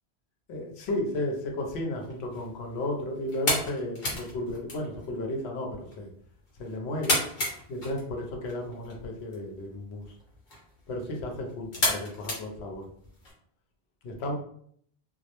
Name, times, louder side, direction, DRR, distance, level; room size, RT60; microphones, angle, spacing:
voice 1, 0.5-6.1 6.6-7.2 7.7-10.0 10.9-12.9 14.0-14.3, left 1 dB, 75° left, 1 dB, 0.9 m, -33 dB
sound 1, 1.9-13.3, left 1 dB, 50° left, 0.9 m, -35 dB
2.2 x 2.0 x 2.8 m, 0.64 s
omnidirectional pair, 1.1 m